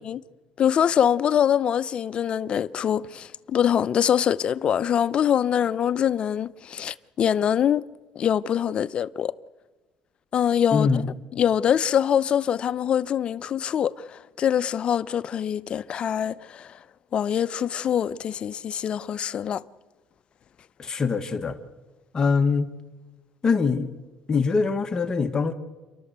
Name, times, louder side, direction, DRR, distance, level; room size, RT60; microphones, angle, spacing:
voice 1, 0.6-7.9 8.2-9.3 10.3-11.0 11.3-16.8 17.1-19.6, left 9 dB, 45° left, 0.7 m, -24 dB
voice 2, 10.7-11.1 20.8-21.6 22.1-22.7 23.4-24.0 24.3-25.5, left 5 dB, 30° left, 1.5 m, -23 dB
30.0 x 12.5 x 8.1 m
cardioid pair, 120°, 2 cm